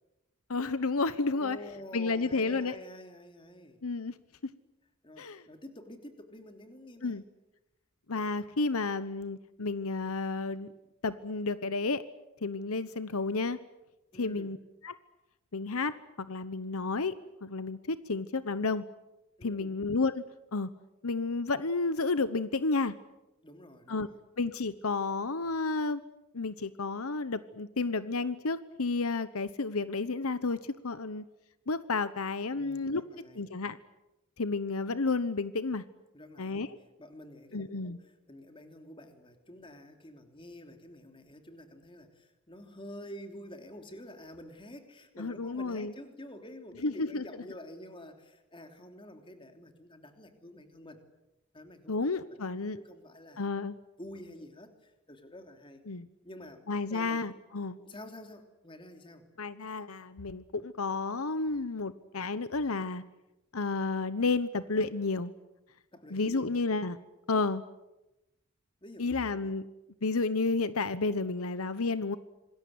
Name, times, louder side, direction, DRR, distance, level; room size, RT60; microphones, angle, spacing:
voice 1, 0.5-1.6 1.9-2.7 3.8-4.1 5.2-5.4 7.0-7.2 8.1-10.7 11.0-12.0 12.4-13.6 14.2-14.6 14.8-14.9 15.5-18.8 19.4-20.2 20.5-20.7 21.0-22.9 23.9-24.1 24.4-26.0 26.3-31.2 31.7-33.0 33.3-33.8 34.4-35.8 36.4-36.8 37.5-38.0 45.2-45.9 46.8-47.2 51.9-52.8 53.4-53.8 55.9-56.1 56.7-57.8 59.4-63.0 63.5-65.3 66.1-67.0 67.3-67.6 69.0-69.7 70.0-72.2, left 3 dB, 75° left, 14 dB, 1.0 m, -31 dB
voice 2, 1.3-3.8 5.0-7.2 14.1-14.5 19.4-19.8 23.4-24.2 32.5-33.5 36.1-36.6 37.0-51.0 51.5-52.4 52.7-53.5 54.0-55.8 56.2-57.2 57.8-59.3 65.9-66.5 68.8-69.3, left 1 dB, 20° left, 6 dB, 3.1 m, -48 dB
26.5 x 20.5 x 9.5 m, 0.97 s
head